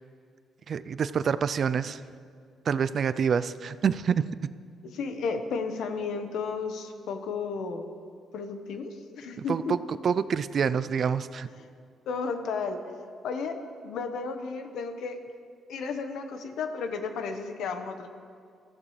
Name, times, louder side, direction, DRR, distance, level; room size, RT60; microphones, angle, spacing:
voice 1, 0.7-2.0 2.7-4.2 9.5-9.8 10.0-11.5, right 7 dB, 50° right, 14 dB, 0.5 m, -26 dB
voice 2, 4.9-7.9 8.3-9.8 12.1-12.8 13.2-13.6 13.8-15.2 15.7-18.1, left 5 dB, 75° left, 6 dB, 1.3 m, -33 dB
23.0 x 14.5 x 3.3 m, 2.2 s
cardioid pair, 90°, 0 cm